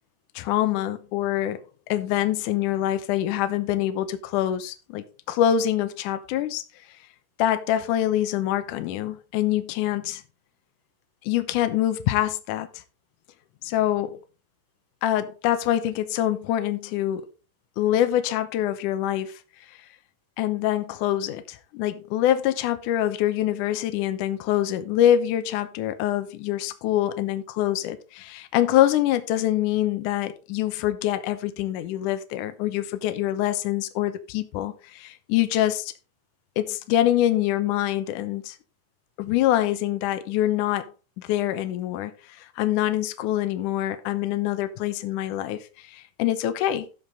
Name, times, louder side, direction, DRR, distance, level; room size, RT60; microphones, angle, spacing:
voice 1, 0.4-1.6 1.9-6.6 7.4-10.2 11.2-12.7 13.6-14.2 15.0-17.3 17.8-19.4 20.4-35.9 36.6-38.6 39.2-40.9 41.2-42.1 42.4-46.9, left 12 dB, 70° left, 2.2 m, -25 dB
12.5 x 7.3 x 3.7 m
omnidirectional pair, 4.1 m